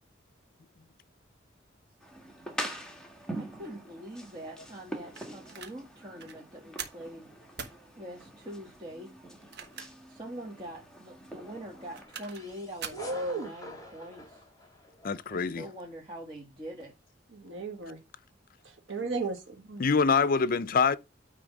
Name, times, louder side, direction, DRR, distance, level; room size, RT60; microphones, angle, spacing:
sound 1, 2.0-12.0, right 1 dB, 5° left, 1.5 m, -44 dB
voice 1, 3.3-7.3 8.0-9.1 10.1-14.4 15.3-17.0, equal, 25° right, 1.4 m, -44 dB
sound 2, 5.2-5.8 6.2-6.4 6.8-7.1 7.6-7.8 9.3-10.1 10.5-10.6 11.7-12.5 12.8-13.1, right 7 dB, 60° right, 1.2 m, -42 dB
sound 3, 11.3-15.4, left 1 dB, 20° left, 2.3 m, -48 dB
voice 2, 12.9-13.5 17.3-18.0 18.6-19.9, right 3 dB, 80° right, 1.5 m, -35 dB
voice 3, 15.0-15.6 19.8-21.0, left 5 dB, 50° left, 0.5 m, -25 dB
9.3 x 3.4 x 5.2 m
head